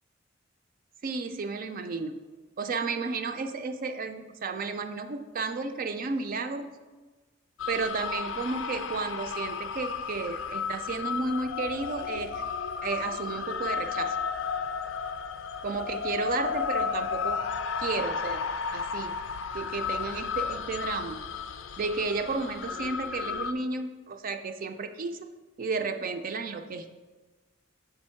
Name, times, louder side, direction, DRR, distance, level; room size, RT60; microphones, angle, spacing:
voice 1, 1.0-2.2 2.6-6.7 7.7-12.4 12.8-14.2 15.6-17.4 17.8-18.5 18.7-19.1 19.5-21.2 21.8-25.3 25.6-26.9, right 4 dB, 45° right, 7 dB, 0.3 m, -32 dB
sound 1, 7.6-23.5, left 6 dB, 75° left, 0.4 m, -33 dB
6.9 x 3.5 x 4.4 m, 1.3 s
head